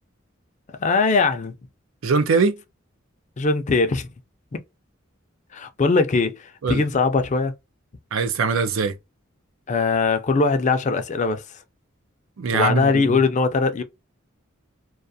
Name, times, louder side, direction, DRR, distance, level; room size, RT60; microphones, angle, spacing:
voice 1, 0.8-1.5 3.4-4.1 5.5-7.5 9.7-11.4 12.5-13.8, left 4 dB, 35° left, 0.4 m, -21 dB
voice 2, 2.0-2.5 6.6-6.8 8.1-8.9 12.4-13.2, right 4 dB, 85° right, 0.5 m, -22 dB
2.4 x 2.3 x 2.6 m
head